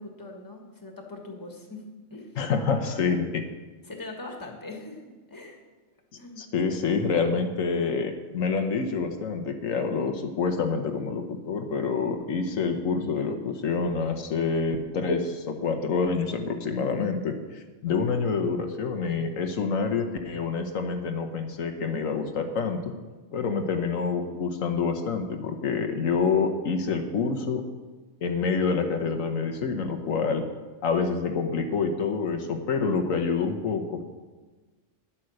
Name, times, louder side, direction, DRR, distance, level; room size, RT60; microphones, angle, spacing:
voice 1, 0.0-1.8 2.1-2.3 3.8-5.0 5.3-5.6 6.2-6.4, left 2 dB, 15° left, 2 dB, 1.6 m, -41 dB
voice 2, 2.4-3.4 6.4-22.9 23.3-27.6 28.2-30.5 30.8-34.0, left 5 dB, 80° left, 5 dB, 1.4 m, -27 dB
10.0 x 8.8 x 6.4 m, 1.3 s
omnidirectional pair, 1.4 m